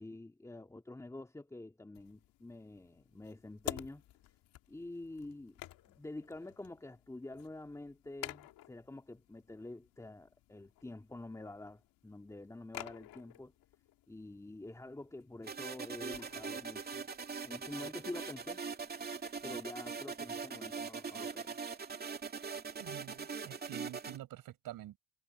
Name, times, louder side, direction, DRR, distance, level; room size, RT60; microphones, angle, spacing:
voice 1, 0.0-4.0 4.7-5.6 5.9-13.5 14.1-17.1 17.4-18.7 19.4-21.6, left 2 dB, 10° left, 2.6 m, -47 dB
sound 1, 1.9-19.6, left 15 dB, 60° left, 2.5 m, -52 dB
sound 2, 15.4-24.2, right 5 dB, 25° right, 2.5 m, -42 dB
voice 2, 22.8-25.0, right 13 dB, 55° right, 5.2 m, -48 dB
supercardioid pair, 110°, 39 cm